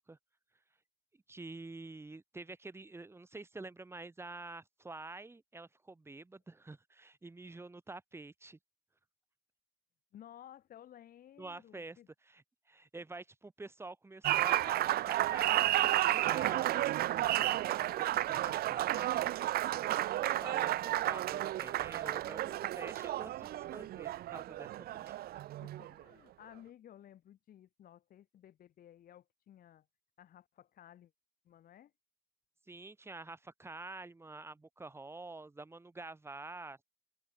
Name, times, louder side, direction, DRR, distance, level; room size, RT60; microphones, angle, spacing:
voice 1, 1.1-8.6 11.4-12.0 12.3-19.3 19.8-25.1 32.7-36.8, right 3 dB, 15° right, 2.8 m, -48 dB
voice 2, 10.1-12.1 25.6-29.9 30.2-31.1 31.4-31.9, left 11 dB, 60° left, 6.9 m, -56 dB
Applause, 14.2-26.0, right 14 dB, 65° right, 0.9 m, -32 dB
cardioid pair, 110°, 17 cm